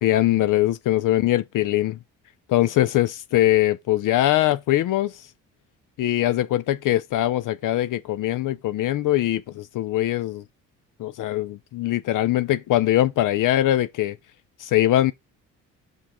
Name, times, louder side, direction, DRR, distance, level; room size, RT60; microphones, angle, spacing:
voice 1, 0.0-2.0 2.5-5.3 6.0-10.4 11.0-14.2 14.6-15.1, left 14 dB, 60° left, 0.5 m, -22 dB
5.6 x 3.7 x 4.7 m
supercardioid pair, 60°, 35 cm